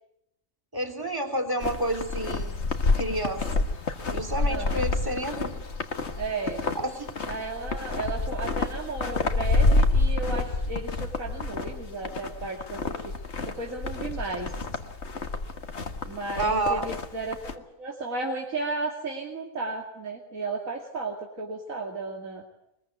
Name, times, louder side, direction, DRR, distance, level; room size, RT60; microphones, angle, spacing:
voice 1, 0.7-3.7 4.1-5.5 6.7-7.1 16.4-16.8, right 1 dB, 15° right, 1 dB, 3.1 m, -30 dB
sound 1, 1.6-17.5, left 3 dB, 55° left, 1.9 m, -28 dB
voice 2, 4.4-4.9 6.1-6.6 7.3-13.1 13.5-14.5 16.0-17.4 17.8-22.4, right 3 dB, 85° right, 0 dB, 3.0 m, -34 dB
23.0 x 21.5 x 9.4 m, 0.80 s
omnidirectional pair, 1.4 m